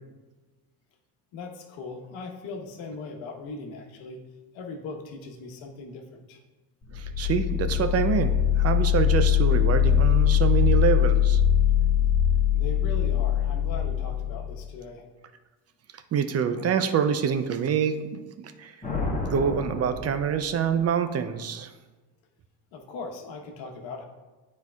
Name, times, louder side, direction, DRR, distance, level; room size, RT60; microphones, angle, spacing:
voice 1, 1.3-4.2 4.5-6.4 12.5-15.1 22.7-24.1, left 4 dB, 65° left, 2 dB, 1.2 m, -39 dB
sound 1, 6.8-14.6, left 9 dB, 30° left, 1.7 m, -22 dB
voice 2, 6.9-11.4 15.9-18.7 19.3-21.7, right 7 dB, 30° right, 9 dB, 0.5 m, -26 dB
sound 2, 18.8-20.8, left 2 dB, 15° left, 1.5 m, -32 dB
9.4 x 4.5 x 2.3 m, 1.2 s
supercardioid pair, 85°, 50 cm